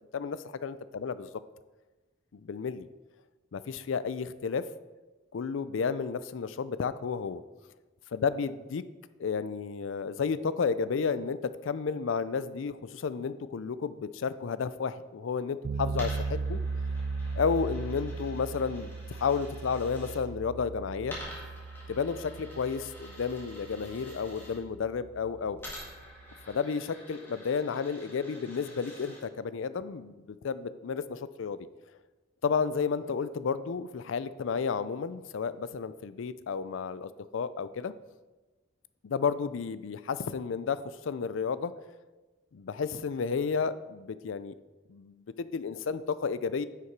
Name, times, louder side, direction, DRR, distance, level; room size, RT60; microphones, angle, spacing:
voice 1, 0.1-1.3 2.3-2.9 3.5-4.6 5.3-7.4 8.1-8.8 9.2-16.6 17.3-21.2 21.9-25.6 26.5-31.7 32.4-37.9 39.0-41.7 42.5-44.5 44.9-46.6, left 5 dB, 85° left, 15 dB, 0.4 m, -32 dB
sound 1, 15.6-26.5, right 4 dB, 70° right, 0.3 m, -38 dB
Coin (dropping), 15.9-20.2 21.0-24.6 25.6-29.2, left 1 dB, 10° left, 2.0 m, -48 dB
9.6 x 5.8 x 4.6 m, 1.2 s
head